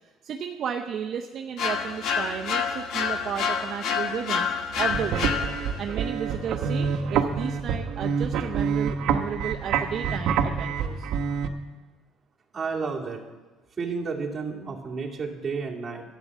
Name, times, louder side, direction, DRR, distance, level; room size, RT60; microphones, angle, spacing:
voice 1, 0.2-4.5 4.8-5.4 5.8-11.1, right 8 dB, 45° right, 3 dB, 0.7 m, -33 dB
sound 1, 1.6-5.9, left 6 dB, 55° left, 1.2 m, -28 dB
sound 2, 4.7-11.5, right 6 dB, 60° right, 1.0 m, -27 dB
voice 2, 12.5-13.2 13.8-16.0, right 4 dB, 20° right, -3 dB, 2.4 m, -31 dB
12.0 x 9.2 x 7.3 m, 1.2 s
cardioid pair, 140°, 0 cm